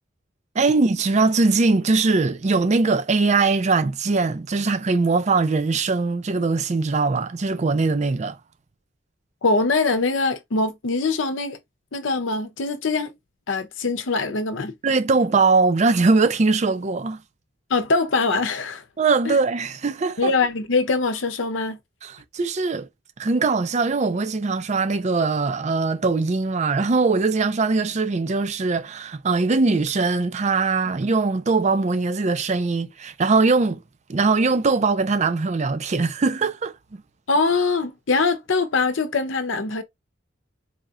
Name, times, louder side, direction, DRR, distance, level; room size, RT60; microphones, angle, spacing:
voice 1, 0.6-8.4 14.8-17.2 19.0-20.3 22.0-22.9 23.2-33.8 34.1-37.0, right 3 dB, 35° right, 0.4 m, -21 dB
voice 2, 9.4-11.6 11.9-13.1 13.5-14.7 17.7-18.8 19.2-19.4 20.2-21.8 37.3-39.8, left 3 dB, 75° left, 0.7 m, -23 dB
4.3 x 2.8 x 2.4 m
head